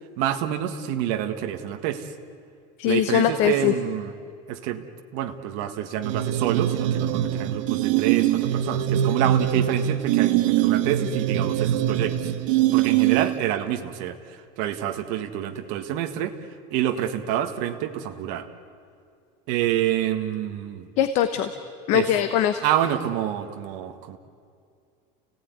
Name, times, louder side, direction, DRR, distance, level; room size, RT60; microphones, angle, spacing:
voice 1, 0.2-2.1 2.8-4.1 4.5-4.8 5.1-12.3 12.7-16.3 16.7-18.5 19.5-20.9 21.9-22.1 22.6-24.2, right 11 dB, 55° right, 5 dB, 1.7 m, -27 dB
voice 2, 2.8-3.7 21.0-21.5 21.9-22.6, left 10 dB, 45° left, 9 dB, 1.0 m, -21 dB
sound 1, 6.0-13.5, right 12 dB, 85° right, 1.4 m, -23 dB
29.5 x 17.5 x 9.6 m, 2.3 s
cardioid pair, 180°, 16 cm